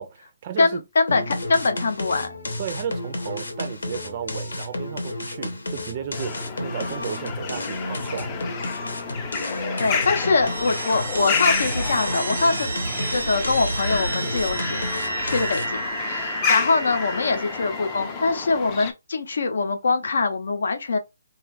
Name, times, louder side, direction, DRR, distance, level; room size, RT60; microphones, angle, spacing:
voice 1, 0.0-0.8 2.6-8.4, right 9 dB, 35° right, 0.4 m, -34 dB
voice 2, 0.6-2.3 9.4-12.7 13.1-21.0, left 3 dB, 65° left, 0.6 m, -23 dB
sound 1, 1.1-15.9, left 2 dB, 85° left, 0.9 m, -32 dB
sound 2, 6.1-18.9, left 5 dB, 20° left, 0.4 m, -30 dB
sound 3, 9.0-18.3, right 3 dB, 85° right, 0.7 m, -31 dB
2.5 x 2.4 x 3.1 m
hypercardioid pair, 160°, 0 cm